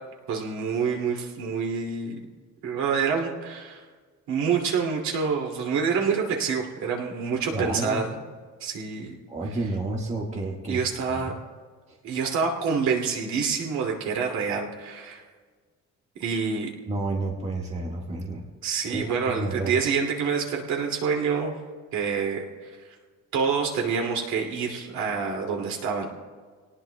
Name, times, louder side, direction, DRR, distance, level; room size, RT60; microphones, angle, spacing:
voice 1, 0.3-2.2 2.6-3.8 4.3-8.1 8.6-9.1 10.7-11.3 12.0-15.2 16.2-16.7 18.6-21.5 21.9-22.4 23.3-26.1, right 5 dB, 70° right, 0 dB, 2.5 m, -27 dB
voice 2, 7.5-8.0 9.3-11.2 16.8-18.5 18.9-19.8, right 2 dB, 25° right, -1 dB, 1.5 m, -30 dB
26.0 x 18.5 x 2.2 m, 1.5 s
cardioid pair, 175°, 29 cm